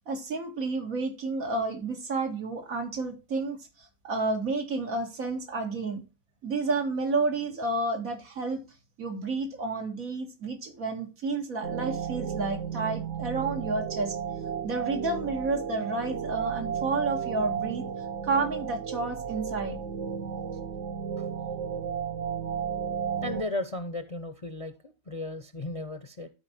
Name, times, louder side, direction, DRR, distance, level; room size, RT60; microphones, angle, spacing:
voice 1, 0.0-6.0 6.4-8.6 9.0-14.2 14.6-17.8 18.2-19.8, right 3 dB, 90° right, 3 dB, 2.4 m, -30 dB
sound 1, 11.6-23.4, right 7 dB, 65° right, 1.1 m, -33 dB
voice 2, 23.2-26.3, left 2 dB, 35° left, 10 dB, 0.6 m, -35 dB
12.0 x 4.8 x 4.3 m, 0.30 s
omnidirectional pair, 1.4 m